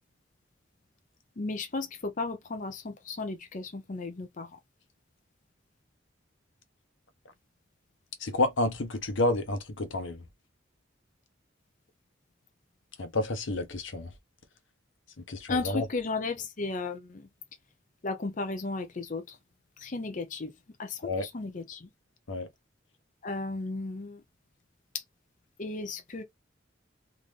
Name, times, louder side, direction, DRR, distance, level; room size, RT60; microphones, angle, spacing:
voice 1, 1.4-4.6 15.5-17.3 18.0-19.4 19.8-20.5 20.8-21.9 23.2-24.2 24.9-25.0 25.6-26.2, left 3 dB, 40° left, 0.6 m, -34 dB
voice 2, 8.2-10.2 13.0-14.1 15.3-15.8 21.1-21.3 22.3-22.5, left 2 dB, 85° left, 1.0 m, -29 dB
3.8 x 2.5 x 3.2 m
head